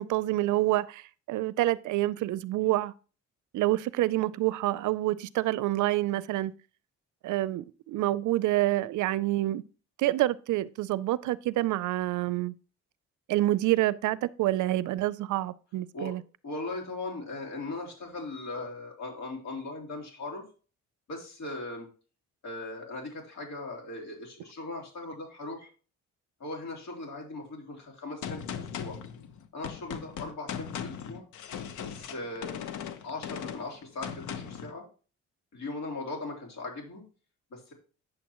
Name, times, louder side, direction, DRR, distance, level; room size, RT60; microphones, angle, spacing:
voice 1, 0.0-2.9 3.5-6.5 7.2-9.6 10.0-12.5 13.3-16.2, right 16 dB, 80° right, 0.5 m, -27 dB
voice 2, 16.4-20.4 21.1-21.9 22.4-25.7 26.4-29.0 29.5-31.3 31.8-32.5 33.0-34.8 35.5-37.0 37.5-37.7, left 2 dB, 65° left, 3.4 m, -39 dB
Gunshot gunfire, 28.2-34.7, left 8 dB, 80° left, 0.9 m, -38 dB
8.9 x 7.2 x 3.0 m
cardioid pair, 90°, 30 cm